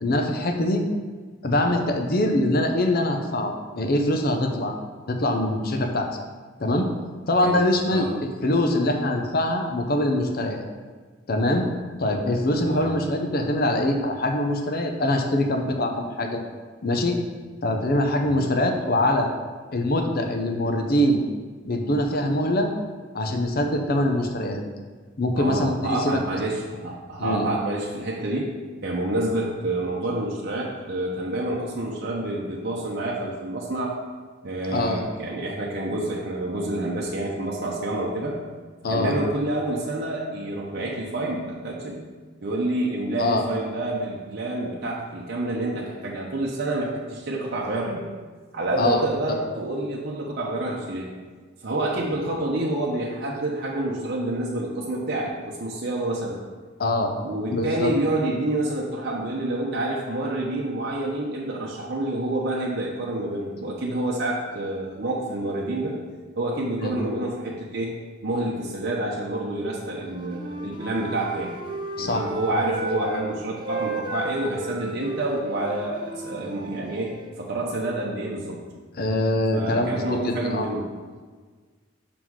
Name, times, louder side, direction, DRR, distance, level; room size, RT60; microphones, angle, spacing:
voice 1, 0.0-0.8 1.4-4.7 5.1-6.1 6.6-6.9 7.3-8.1 8.4-10.6 11.3-11.7 12.0-16.4 16.8-17.2 17.6-19.3 19.7-21.2 21.6-22.7 23.1-24.6 25.2-26.2 27.2-27.5 34.7-35.0 38.8-39.2 43.2-43.4 48.8-49.0 56.8-57.1 57.5-57.9 66.8-67.0 72.0-72.6 73.1-73.2 79.0-80.7, left 1 dB, 50° left, 4 dB, 0.7 m, -23 dB
voice 2, 25.3-28.6 28.8-33.9 34.4-38.4 38.9-42.0 42.4-48.0 48.5-51.1 51.6-56.4 57.2-66.0 66.4-68.0 68.2-71.5 72.0-78.6 79.5-80.9, right 1 dB, 55° right, -4 dB, 0.8 m, -28 dB
Wind instrument woodwind instrument, 70.0-73.3 73.6-77.3, right 2 dB, 25° right, 0.6 m, -34 dB
5.9 x 4.0 x 4.6 m, 1.5 s
head